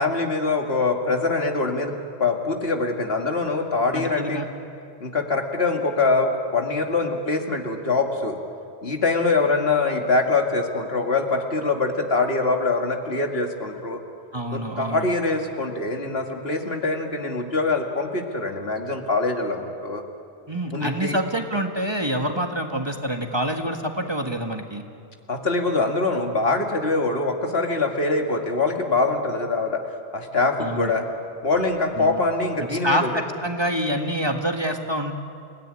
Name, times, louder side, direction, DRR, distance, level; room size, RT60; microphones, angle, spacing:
voice 1, 0.0-4.5 5.0-8.4 8.8-14.0 14.5-20.0 20.7-21.2 25.3-29.8 30.1-31.1 31.4-33.1, left 3 dB, 65° left, 3 dB, 2.3 m, -24 dB
voice 2, 3.9-4.5 14.3-15.1 20.5-24.8 30.6-30.9 32.0-32.2 32.6-35.1, right 1 dB, 25° right, 4 dB, 1.6 m, -26 dB
28.5 x 17.5 x 9.9 m, 2.4 s
omnidirectional pair, 1.1 m